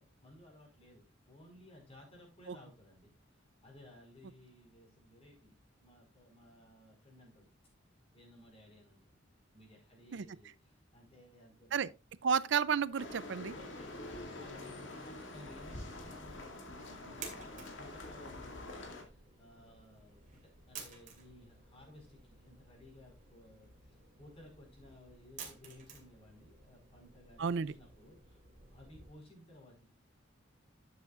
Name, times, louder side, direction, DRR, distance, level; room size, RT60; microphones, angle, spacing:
voice 1, 0.0-7.5 8.1-9.1 9.5-11.9 13.4-28.4 28.7-29.9, left 1 dB, 30° left, 4.8 m, -58 dB
voice 2, 12.2-13.5 27.4-27.7, right 6 dB, 65° right, 0.4 m, -32 dB
sound 1, 13.0-19.0, left 2 dB, 70° left, 2.1 m, -46 dB
sound 2, 16.0-29.1, right 5 dB, 40° right, 2.6 m, -54 dB
12.0 x 8.0 x 2.5 m
head